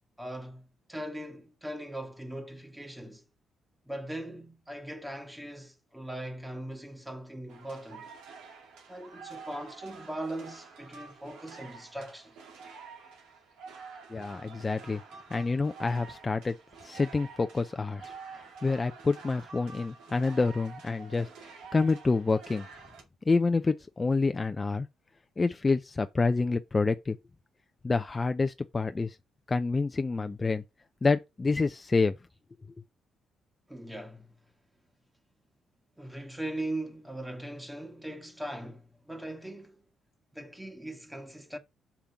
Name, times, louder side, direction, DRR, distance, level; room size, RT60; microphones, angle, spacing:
voice 1, 0.2-3.2 3.9-8.1 8.9-12.4 33.7-34.3 36.0-39.8 40.3-41.6, right 1 dB, 10° right, 1.4 m, -40 dB
sound 1, 7.5-23.0, right 5 dB, 90° right, 2.2 m, -48 dB
voice 2, 14.1-15.0 15.3-16.5 16.8-18.1 18.6-21.3 21.7-22.7 23.3-24.9 25.4-27.2 27.8-29.2 29.5-30.6 31.0-32.1, left 3 dB, 25° left, 0.4 m, -27 dB
5.7 x 5.1 x 5.9 m
cardioid pair, 90°, 0 cm